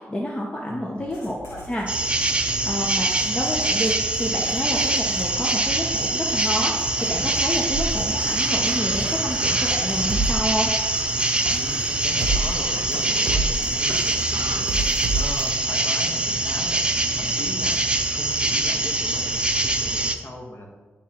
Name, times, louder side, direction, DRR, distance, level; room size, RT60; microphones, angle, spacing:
voice 1, 0.0-2.0 2.6-10.7, equal, 25° left, -1 dB, 0.8 m, -29 dB
voice 2, 0.7-1.1 11.5-17.8 18.1-20.7, left 1 dB, 45° left, 0 dB, 1.4 m, -38 dB
Writing, 1.0-14.8, left 2 dB, 65° left, 1.9 m, -42 dB
sound 1, 1.9-20.2, right 2 dB, 20° right, 0.6 m, -24 dB
sound 2, 7.7-15.6, right 2 dB, 70° right, 0.6 m, -30 dB
10.5 x 3.7 x 3.0 m, 1.4 s
cardioid pair, 80°, 5 cm